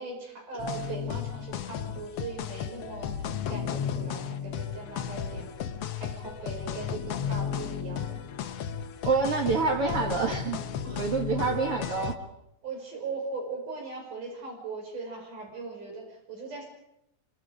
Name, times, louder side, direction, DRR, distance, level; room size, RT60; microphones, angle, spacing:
voice 1, 0.0-5.5 6.0-8.2 10.8-11.1 11.5-11.7 12.6-16.6, right 3 dB, 80° right, 0 dB, 6.9 m, -39 dB
sound 1, 0.6-12.2, left 8 dB, 65° left, 1.7 m, -34 dB
voice 2, 9.0-10.6 11.0-12.2, right 4 dB, 50° right, 1 dB, 2.7 m, -27 dB
27.0 x 25.0 x 5.0 m, 0.83 s
omnidirectional pair, 3.6 m